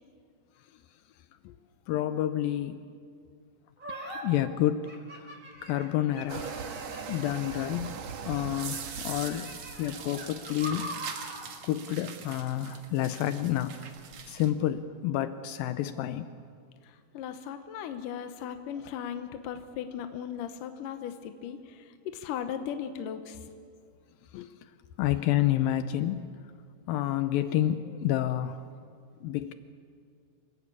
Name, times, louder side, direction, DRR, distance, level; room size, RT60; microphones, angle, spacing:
voice 1, 1.9-2.8 4.2-5.3 5.6-6.6 7.1-8.0 8.3-9.5 9.8-10.9 11.6-13.8 14.3-16.3 24.3-24.5 25.0-26.2 26.9-28.6 29.2-29.5, left 12 dB, 90° left, 11 dB, 2.0 m, -29 dB
sound 1, 3.8-4.2 4.8-7.7 8.3-11.5, equal, 10° right, 3.2 m, -43 dB
sound 2, 6.3-14.5, right 6 dB, 60° right, 1.8 m, -41 dB
voice 2, 16.8-23.4, left 8 dB, 75° left, 8 dB, 2.1 m, -37 dB
27.0 x 17.5 x 8.5 m, 2.2 s
omnidirectional pair, 5.0 m